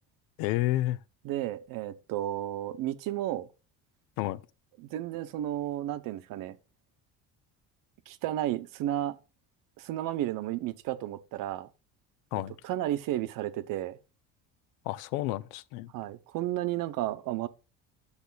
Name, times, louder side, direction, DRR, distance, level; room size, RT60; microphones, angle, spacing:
voice 1, 0.4-1.0 4.2-4.4 12.3-12.5 14.9-15.9, left 15 dB, 90° left, 0.7 m, -30 dB
voice 2, 1.2-3.5 4.8-6.6 8.1-9.2 9.8-11.7 12.3-14.0 15.9-17.5, right 13 dB, 65° right, 1.0 m, -33 dB
9.8 x 6.7 x 4.0 m
cardioid pair, 120°, 35 cm